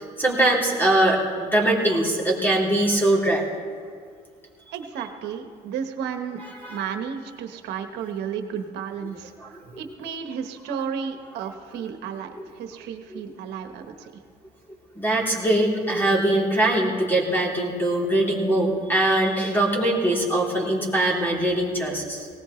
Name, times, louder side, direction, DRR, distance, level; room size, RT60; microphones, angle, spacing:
voice 1, 0.0-3.5 6.6-6.8 9.5-9.6 15.0-22.3, right 1 dB, 10° left, -3 dB, 3.5 m, -22 dB
voice 2, 4.7-6.4 6.7-12.3 12.5-14.1, right 7 dB, 85° right, 6 dB, 1.3 m, -33 dB
19.0 x 17.5 x 3.2 m, 2.1 s
cardioid pair, 110°, 17 cm